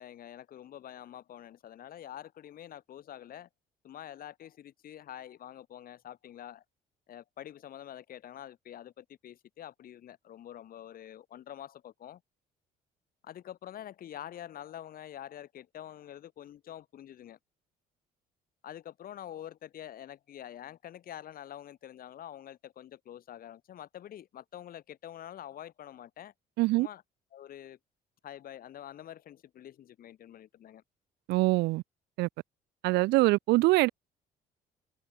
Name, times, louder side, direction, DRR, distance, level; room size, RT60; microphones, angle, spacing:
voice 1, 0.0-3.5 3.8-6.6 7.1-12.2 13.2-17.4 18.6-26.3 26.7-27.0 27.3-27.8 28.2-30.8, left 11 dB, 60° left, 7.0 m, -46 dB
voice 2, 26.6-26.9 31.3-31.8 32.2-32.3 32.8-33.9, right 20 dB, 85° right, 0.5 m, -24 dB
cardioid pair, 110°, 17 cm